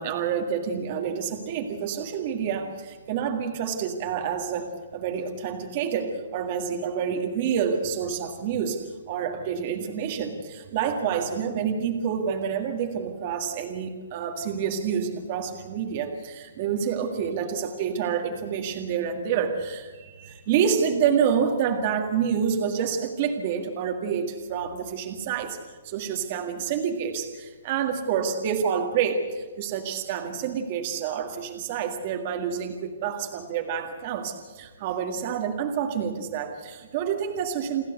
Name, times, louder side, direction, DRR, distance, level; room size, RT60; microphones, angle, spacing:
voice 1, 0.0-8.8 9.1-25.6 25.8-37.8, right 7 dB, 25° right, 4 dB, 1.9 m, -28 dB
29.0 x 12.0 x 8.1 m, 1.4 s
hypercardioid pair, 180°, 0 cm